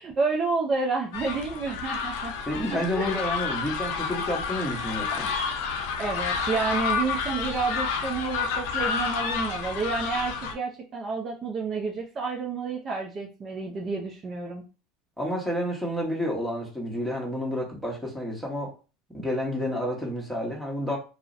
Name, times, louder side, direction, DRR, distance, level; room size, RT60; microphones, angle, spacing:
voice 1, 0.0-2.3 2.9-3.2 6.0-14.6, right 4 dB, 35° right, 0 dB, 0.5 m, -30 dB
sound 1, 1.1-10.5, left 5 dB, 70° left, 0.4 m, -30 dB
voice 2, 2.5-5.3 15.2-18.7 19.1-21.0, left 1 dB, ahead, -3 dB, 1.1 m, -30 dB
2.4 x 2.0 x 2.6 m, 0.32 s
hypercardioid pair, 90°, 0 cm